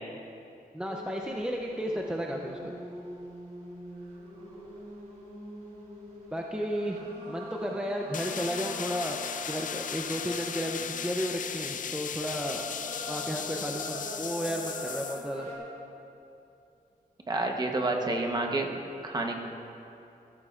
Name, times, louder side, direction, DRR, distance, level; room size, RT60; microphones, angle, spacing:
voice 1, 0.7-2.7 6.3-7.0 7.3-9.2 9.5-12.6 13.1-15.5, equal, 5° right, 0 dB, 0.5 m, -33 dB
sound 1, 0.9-15.6, equal, 60° right, 2.7 m, -44 dB
sound 2, 8.1-15.3, left 8 dB, 55° left, 0.4 m, -37 dB
voice 2, 17.3-19.4, right 2 dB, 25° right, 2 dB, 1.0 m, -29 dB
15.5 x 14.0 x 2.4 m, 2.7 s
wide cardioid pair, 165°, 16 cm